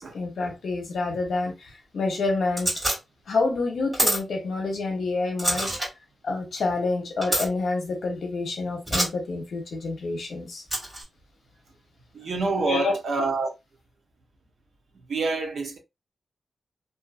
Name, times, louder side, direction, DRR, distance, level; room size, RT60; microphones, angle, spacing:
voice 1, 0.0-2.8 3.3-5.7 6.2-10.6 12.6-12.9, left 3 dB, 65° left, 0.9 m, -28 dB
sound 1, 2.6-3.0 3.9-4.2 5.4-5.9 7.2-7.5 8.9-9.1 10.7-11.0, right 1 dB, 15° right, 1.6 m, -25 dB
voice 2, 12.1-13.5 15.1-15.8, right 3 dB, 60° right, 0.7 m, -26 dB
2.7 x 2.6 x 2.4 m
wide cardioid pair, 175°, 0 cm